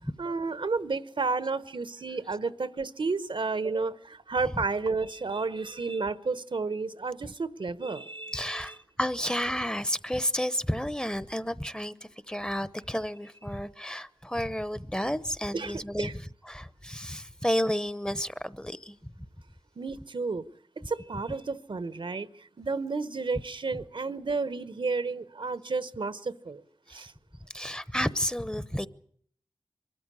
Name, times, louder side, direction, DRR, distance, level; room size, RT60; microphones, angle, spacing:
voice 1, 0.2-8.7 15.5-16.1 19.8-20.4 20.8-26.6 26.9-27.1, right 4 dB, 75° right, 0.9 m, -32 dB
voice 2, 8.3-19.1 26.9-27.0 27.5-28.9, equal, 10° left, 0.8 m, -31 dB
23.5 x 14.0 x 9.8 m
wide cardioid pair, 50°, 9 cm